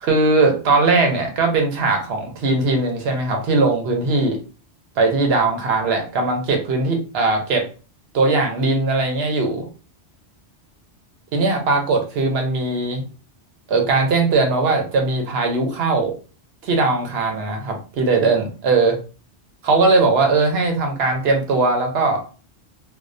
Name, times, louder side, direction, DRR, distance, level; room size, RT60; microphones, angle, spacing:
voice 1, 0.0-4.4 5.0-7.7 8.1-9.7 11.3-13.0 13.7-16.1 16.6-19.0 19.6-22.2, right 3 dB, 70° right, 3 dB, 0.9 m, -19 dB
2.3 x 2.2 x 2.5 m, 0.35 s
omnidirectional pair, 1.1 m